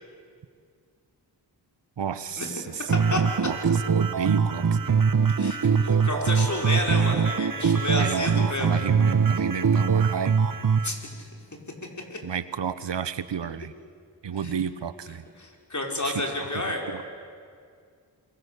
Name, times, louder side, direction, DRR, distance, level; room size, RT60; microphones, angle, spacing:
voice 1, 2.0-5.0 7.9-10.6 12.2-13.7 14.2-15.2 16.0-16.6 16.9-17.0, right 7 dB, 85° right, 14 dB, 1.1 m, -32 dB
sound 1, 2.9-10.9, right 6 dB, 50° right, 1.2 m, -23 dB
voice 2, 3.1-3.5 5.4-8.7 10.8-11.0 12.1-12.2 14.4-14.5 15.4-16.8, left 2 dB, 40° left, 1 dB, 5.4 m, -30 dB
28.5 x 23.0 x 8.5 m, 2.2 s
cardioid pair, 55°, 42 cm